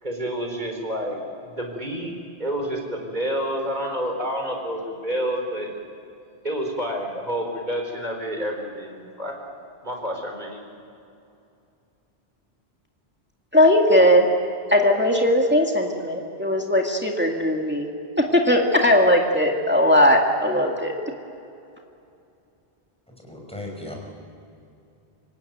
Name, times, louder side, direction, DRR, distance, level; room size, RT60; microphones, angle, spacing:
voice 1, 0.0-1.2 1.5-2.1 2.4-5.7 6.4-9.4 9.8-10.6, equal, 45° right, 2 dB, 4.4 m, -29 dB
voice 2, 13.5-14.2 14.7-17.9 18.3-20.9, left 1 dB, 10° right, 1 dB, 2.0 m, -18 dB
voice 3, 23.1-24.0, left 1 dB, 5° left, 0 dB, 5.8 m, -37 dB
26.5 x 17.5 x 9.3 m, 2.6 s
omnidirectional pair, 1.1 m